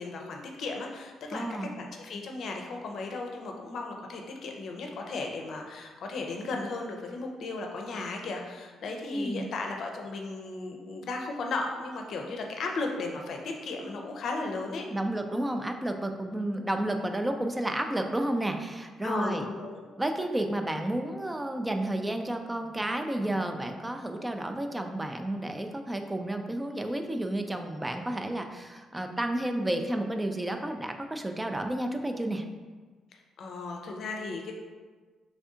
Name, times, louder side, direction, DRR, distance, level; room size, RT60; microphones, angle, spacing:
voice 1, 0.0-14.8 19.0-19.8 33.4-34.6, left 3 dB, 65° left, 2 dB, 0.6 m, -35 dB
voice 2, 1.3-1.8 9.1-9.5 14.9-19.5 20.0-32.4, right 1 dB, 15° right, 5 dB, 0.4 m, -31 dB
3.4 x 2.6 x 3.6 m, 1.4 s
cardioid pair, 90°, 0 cm